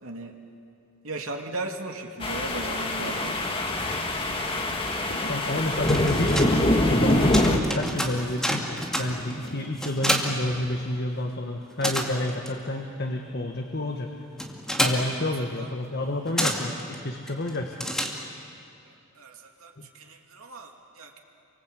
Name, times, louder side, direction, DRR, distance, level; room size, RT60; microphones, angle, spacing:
voice 1, 0.0-0.3 1.0-3.3 15.6-15.7 19.2-21.2, right 2 dB, 80° right, 2 dB, 2.8 m, -37 dB
sound 1, 2.2-7.6, left 1 dB, 25° left, 2.0 m, -24 dB
Run, 2.8-9.6, equal, 70° left, 6.5 m, -45 dB
voice 2, 5.2-14.1 14.8-17.8 19.8-19.9, left 1 dB, 50° left, 3 dB, 1.6 m, -30 dB
sound 2, 5.9-11.2 11.5-18.6, equal, 5° left, 2.2 m, -31 dB
28.5 x 24.5 x 8.3 m, 2.5 s
head